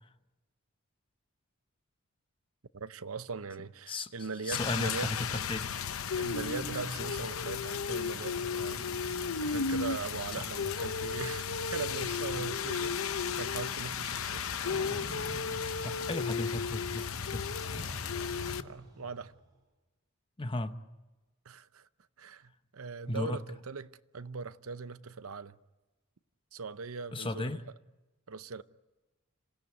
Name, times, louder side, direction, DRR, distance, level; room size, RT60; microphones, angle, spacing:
voice 1, 2.7-5.5 6.2-9.0 9.4-14.5 18.6-19.3 21.5-21.9 22.2-25.6 26.5-27.6 28.3-28.6, right 4 dB, 70° right, 0.7 m, -40 dB
voice 2, 4.4-5.7 10.4-10.5 15.8-17.5 20.4-20.7 23.1-23.4 27.1-27.6, left 2 dB, 25° left, 0.9 m, -35 dB
Rain, 4.5-18.6, left 6 dB, 70° left, 0.8 m, -34 dB
sound 1, 14.6-16.5 17.6-19.4, equal, 20° right, 6.3 m, -47 dB
27.0 x 17.0 x 9.5 m
head